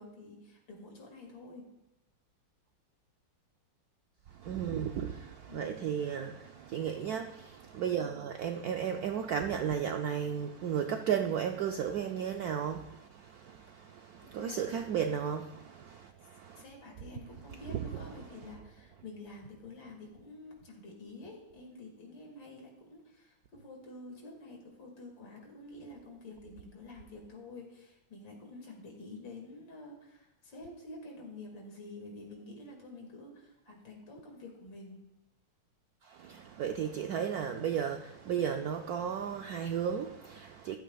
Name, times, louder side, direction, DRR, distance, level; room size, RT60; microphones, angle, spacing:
voice 1, 0.0-1.7 5.5-5.9 14.3-14.6 16.6-35.1, left 2 dB, 70° left, 2.9 m, -49 dB
voice 2, 4.3-16.6 17.7-18.1 36.0-40.8, right 8 dB, 75° right, 0.8 m, -34 dB
14.0 x 12.0 x 2.3 m
omnidirectional pair, 2.2 m